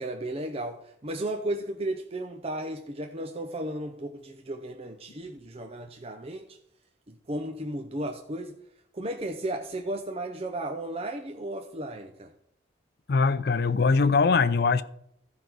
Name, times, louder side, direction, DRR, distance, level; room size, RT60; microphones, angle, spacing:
voice 1, 0.0-6.6 7.1-8.6 8.9-12.3, right 1 dB, 35° right, 0.8 m, -34 dB
voice 2, 13.1-14.8, left 4 dB, 60° left, 0.5 m, -22 dB
13.5 x 5.3 x 6.2 m
head